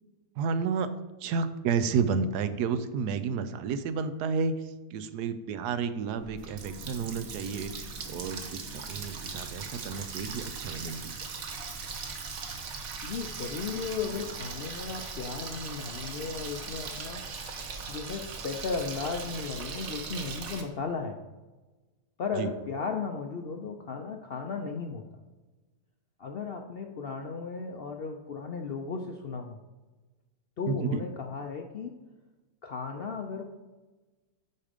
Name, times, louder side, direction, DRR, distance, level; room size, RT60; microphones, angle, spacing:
voice 1, 0.4-0.9 1.2-11.1 22.4-22.5 30.7-31.0, right 5 dB, 90° right, 12 dB, 1.2 m, -31 dB
Water tap faucet, 6.2-20.6, right 4 dB, 65° right, 1.4 m, -39 dB
voice 2, 13.0-17.2 17.9-21.2 22.2-25.0 26.2-29.6 30.6-32.0 32.6-33.4, left 5 dB, 65° left, 4 dB, 0.6 m, -35 dB
8.4 x 5.1 x 5.0 m, 1.2 s
omnidirectional pair, 1.7 m